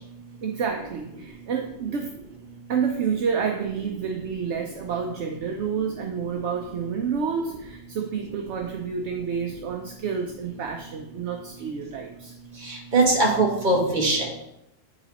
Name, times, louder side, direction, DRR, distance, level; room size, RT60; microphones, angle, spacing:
voice 1, 0.4-2.1 2.7-12.3, right 6 dB, 70° right, 3 dB, 1.0 m, -29 dB
voice 2, 12.7-14.4, right 2 dB, 40° right, -2 dB, 1.8 m, -21 dB
10.0 x 4.1 x 4.1 m, 0.81 s
omnidirectional pair, 1.3 m